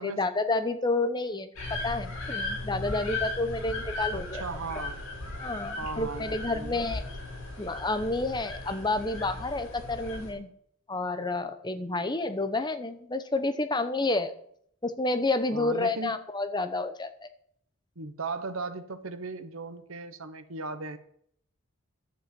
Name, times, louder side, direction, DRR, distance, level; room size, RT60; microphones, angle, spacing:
voice 1, 0.0-4.4 5.4-7.0 7.6-10.5 10.9-14.3 14.8-17.3, left 2 dB, 20° left, 10 dB, 0.8 m, -30 dB
sound 1, 1.6-10.3, left 2 dB, 65° left, 6.2 m, -36 dB
voice 2, 4.1-5.0 5.8-6.8 15.5-16.2 18.0-21.0, right 3 dB, 65° right, 12 dB, 1.1 m, -37 dB
11.5 x 7.8 x 7.7 m, 0.67 s
head